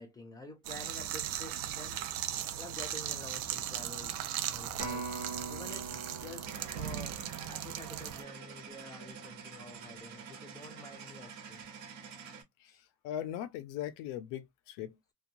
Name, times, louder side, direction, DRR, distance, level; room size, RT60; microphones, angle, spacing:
voice 1, 0.0-7.2 7.5-11.6 12.7-12.8, left 2 dB, 10° left, 0.4 m, -49 dB
sound 1, 0.6-8.2, right 10 dB, 45° right, 0.5 m, -38 dB
Acoustic guitar, 4.8-9.2 9.8-10.0, right 3 dB, 20° right, 0.8 m, -44 dB
sound 2, 6.4-12.4, right 6 dB, 75° right, 1.2 m, -47 dB
voice 2, 12.6-15.0, left 11 dB, 85° left, 0.6 m, -40 dB
3.0 x 2.2 x 2.5 m
cardioid pair, 160°, 48 cm